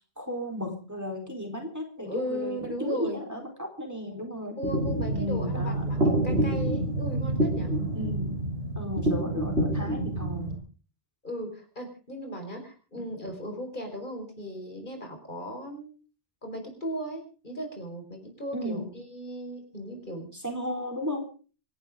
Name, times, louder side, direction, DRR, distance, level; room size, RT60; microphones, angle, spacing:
voice 1, 0.2-4.6 5.1-5.8 7.9-8.4 8.8-10.6 13.0-13.1 18.5-18.9 20.3-21.2, left 1 dB, 15° right, 3 dB, 4.0 m, -34 dB
voice 2, 2.0-3.2 4.6-7.7 11.2-15.9 16.4-20.3, equal, 50° left, 3 dB, 5.2 m, -37 dB
sound 1, 4.6-10.5, right 1 dB, 80° right, 5.4 m, -27 dB
27.0 x 11.5 x 3.8 m, 0.38 s
omnidirectional pair, 1.1 m